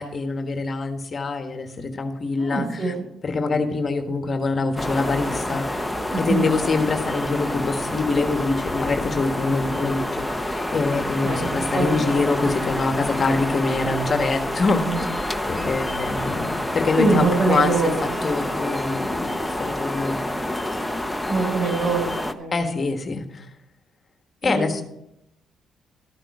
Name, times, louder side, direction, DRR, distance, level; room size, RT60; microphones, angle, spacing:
voice 1, 0.0-2.9 3.2-15.2 15.5-17.9 18.2-20.2 22.5-23.4 24.4-24.8, left 3 dB, 40° left, 6 dB, 1.5 m, -25 dB
voice 2, 2.4-3.1 6.1-6.5 11.2-12.5 14.8-15.0 17.0-18.2 21.3-22.1 22.4-22.9 24.4-24.8, right 3 dB, 55° right, 1 dB, 5.7 m, -24 dB
sound 1, 4.8-22.3, left 1 dB, 5° left, 1.0 m, -28 dB
13.5 x 8.8 x 4.9 m, 0.81 s
cardioid pair, 90°, 0 cm